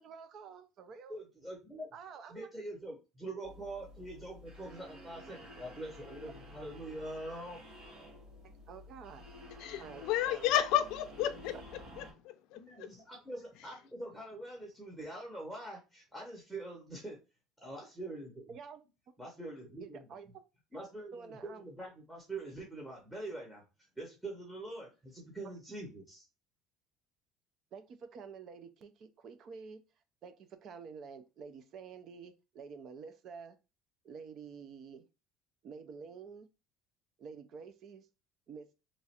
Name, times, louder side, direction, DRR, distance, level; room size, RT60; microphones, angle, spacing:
voice 1, 0.0-1.2 1.9-2.5 8.4-9.2 9.8-10.5 18.5-18.8 19.8-20.4 21.1-21.6 27.7-29.8 30.2-33.6 34.0-35.0 35.6-36.5 37.2-38.1 38.5-38.7, right 5 dB, 45° right, 0.5 m, -49 dB
voice 2, 1.1-1.9 2.3-7.6 12.5-17.2 17.6-18.5 19.2-20.0 20.7-23.6 24.0-26.2, right 2 dB, 5° right, 0.8 m, -44 dB
sound 1, 3.4-12.1, left 1 dB, 85° right, 1.6 m, -52 dB
voice 3, 9.6-11.5 12.0-12.9, left 11 dB, 65° left, 0.4 m, -32 dB
3.0 x 2.4 x 4.2 m
cardioid pair, 150°, 0 cm